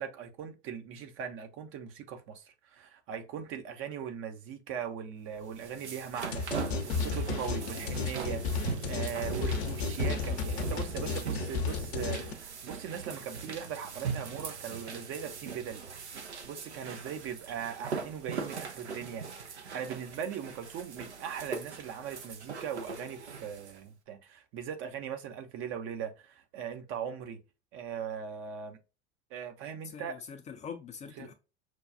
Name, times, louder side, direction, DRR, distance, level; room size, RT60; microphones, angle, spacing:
voice 1, 0.0-15.8 16.4-27.4 27.7-28.8 29.3-30.2 31.2-31.3, right 8 dB, 40° right, 0.7 m, -40 dB
sound 1, 5.4-23.8, right 6 dB, 80° right, 0.7 m, -40 dB
sound 2, 6.3-12.3, left 5 dB, 65° left, 0.7 m, -33 dB
voice 2, 29.8-31.3, left 7 dB, 20° left, 0.5 m, -43 dB
6.0 x 2.3 x 2.5 m
figure-of-eight pair, 75°, 34 cm